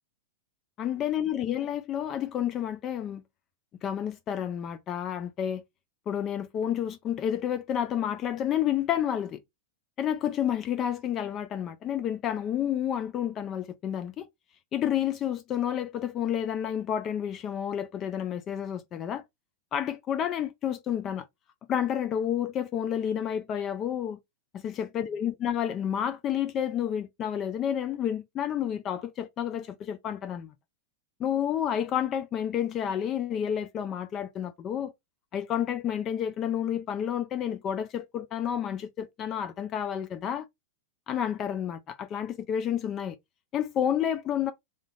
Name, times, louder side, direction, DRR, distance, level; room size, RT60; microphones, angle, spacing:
voice 1, 0.8-3.2 3.8-5.6 6.1-9.4 10.0-14.3 14.7-19.2 19.7-21.3 21.7-24.2 24.5-30.5 31.2-34.9 35.3-40.5 41.1-43.2 43.5-44.5, left 9 dB, 35° left, 0.3 m, -30 dB
2.7 x 2.3 x 3.3 m
hypercardioid pair, 105°, 0 cm